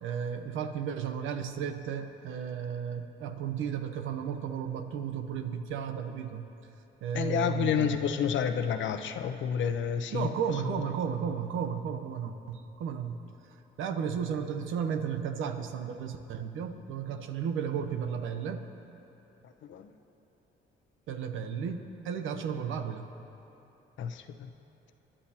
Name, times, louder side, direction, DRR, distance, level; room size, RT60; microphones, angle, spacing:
voice 1, 0.0-6.5 7.0-8.0 10.1-13.2 13.8-18.6 21.1-23.1, right 7 dB, 85° right, 8 dB, 0.9 m, -34 dB
voice 2, 7.1-10.3 19.7-19.9 24.0-24.5, left 8 dB, 70° left, 7 dB, 0.8 m, -29 dB
25.0 x 11.0 x 2.9 m, 3.0 s
cardioid pair, 90°, 20 cm